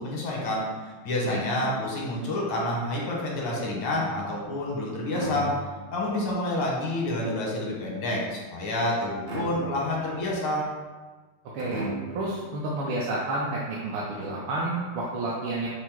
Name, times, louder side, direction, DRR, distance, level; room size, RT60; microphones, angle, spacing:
voice 1, 0.0-5.5 5.9-10.7, left 1 dB, 90° left, -3 dB, 1.8 m, -28 dB
sound 1, 3.9-4.5 5.1-6.0 9.3-10.1 11.6-12.4, right 1 dB, 60° right, 0.9 m, -35 dB
voice 2, 11.5-11.9 12.1-15.7, right 2 dB, 75° right, -5 dB, 1.5 m, -30 dB
5.8 x 2.0 x 4.4 m, 1.4 s
omnidirectional pair, 2.3 m